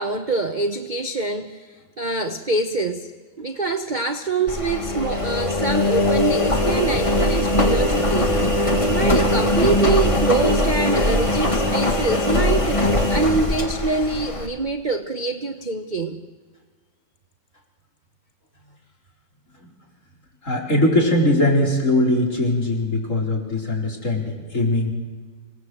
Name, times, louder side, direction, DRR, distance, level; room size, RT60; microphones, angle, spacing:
voice 1, 0.0-3.1 3.4-8.4 8.9-16.2, right 3 dB, 35° right, 8 dB, 0.9 m, -25 dB
Engine, 4.5-14.5, left 1 dB, 20° left, 1.9 m, -20 dB
voice 2, 20.4-24.9, left 1 dB, 45° left, 0 dB, 4.8 m, -20 dB
27.0 x 18.5 x 7.9 m, 1.5 s
omnidirectional pair, 1.9 m